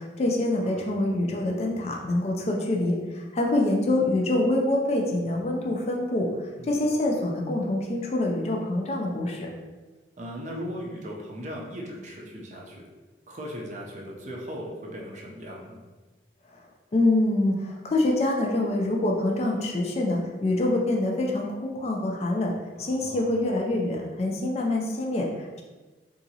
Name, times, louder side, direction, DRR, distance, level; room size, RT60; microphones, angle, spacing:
voice 1, 0.0-6.3 6.6-9.5 16.5-16.6 16.9-22.5 22.8-25.6, left 1 dB, 35° left, 0 dB, 0.3 m, -25 dB
voice 2, 0.5-0.9 6.6-6.7 10.2-12.8 13.3-15.8 22.8-23.3, equal, 40° right, -1 dB, 0.5 m, -38 dB
2.8 x 2.5 x 2.7 m, 1.3 s
head